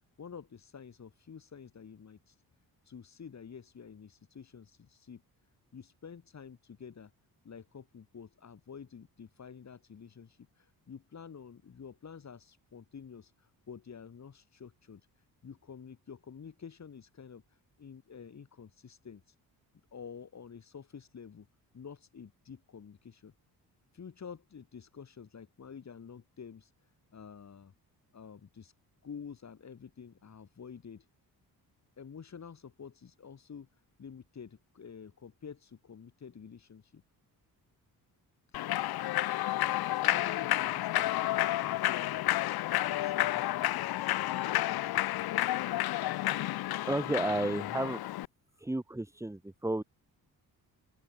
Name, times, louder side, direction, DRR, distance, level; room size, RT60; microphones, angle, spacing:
voice 1, 0.2-2.3 2.9-5.2 5.7-7.1 7.4-15.0 15.4-17.4 17.8-19.2 19.9-21.5 21.7-23.3 23.9-26.7 27.1-27.7 28.1-28.7 29.0-31.0 32.0-33.7 34.0-37.0 38.5-38.6 39.9-42.5 42.8-45.2, left 6 dB, 45° left, 7.7 m, -49 dB
Human voice / Clapping / Cheering, 38.5-48.3, left 15 dB, 75° left, 0.7 m, -31 dB
voice 2, 46.9-48.1 48.6-49.8, right 2 dB, 10° right, 2.0 m, -32 dB
open air
cardioid pair, 105°, 37 cm